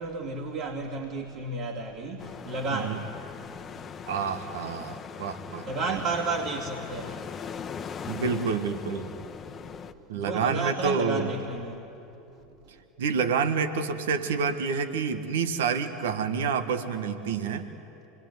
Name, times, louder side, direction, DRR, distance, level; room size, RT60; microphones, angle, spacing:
voice 1, 0.0-3.1 5.7-7.3 10.1-11.8, right 3 dB, 55° right, 2.7 m, -32 dB
sound 1, 2.2-9.9, left 7 dB, 30° left, 1.1 m, -40 dB
voice 2, 4.1-5.7 8.1-9.1 10.1-11.3 13.0-17.7, right 5 dB, 70° right, 1.4 m, -28 dB
26.5 x 21.5 x 9.5 m
hypercardioid pair, 85°, 0 cm